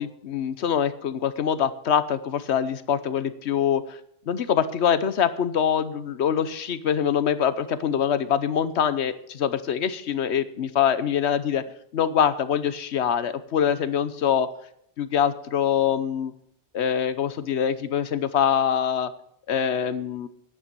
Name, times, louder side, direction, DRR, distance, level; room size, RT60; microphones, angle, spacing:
voice 1, 0.0-4.0 4.3-11.6 11.9-14.5 15.0-16.3 16.7-19.1 19.5-20.3, left 8 dB, 85° left, 14 dB, 1.1 m, -24 dB
11.0 x 9.0 x 6.9 m, 0.72 s
omnidirectional pair, 1.1 m